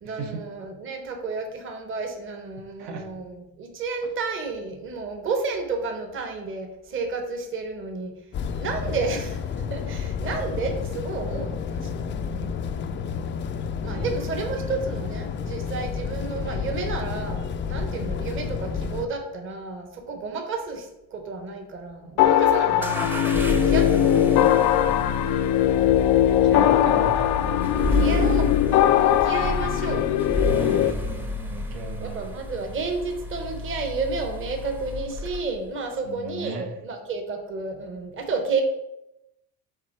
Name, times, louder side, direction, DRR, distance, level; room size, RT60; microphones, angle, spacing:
voice 1, 0.0-8.1 8.6-13.0 13.8-20.9 21.1-24.6 27.7-28.5 29.0-30.0 30.5-30.9 32.0-38.6, right 4 dB, 35° right, 4 dB, 1.0 m, -31 dB
sound 1, 8.3-19.1, left 6 dB, 30° left, 0.4 m, -30 dB
sound 2, 22.2-30.9, left 11 dB, 90° left, 0.5 m, -20 dB
sound 3, 22.8-35.7, left 1 dB, 5° right, 0.7 m, -30 dB
voice 2, 26.3-28.3 29.4-29.6 29.9-30.0 30.8-30.9 31.5-32.2 36.0-36.7, right 3 dB, 75° right, 3 dB, 1.2 m, -36 dB
7.2 x 3.6 x 4.4 m, 0.89 s
cardioid pair, 135°, 37 cm